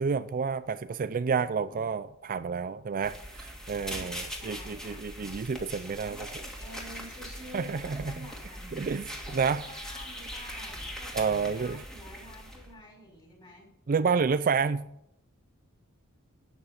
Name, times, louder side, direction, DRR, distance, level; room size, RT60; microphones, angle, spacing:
voice 1, 0.0-6.3 7.5-8.3 8.7-9.6 11.1-11.8 13.9-14.9, right 5 dB, 40° right, 0.4 m, -29 dB
voice 2, 1.5-1.8 3.0-3.2 3.7-5.1 5.8-8.9 9.3-13.7, left 1 dB, 20° left, 5.6 m, -50 dB
sound 1, 3.0-12.7, equal, 5° left, 2.5 m, -41 dB
13.0 x 9.3 x 5.5 m
head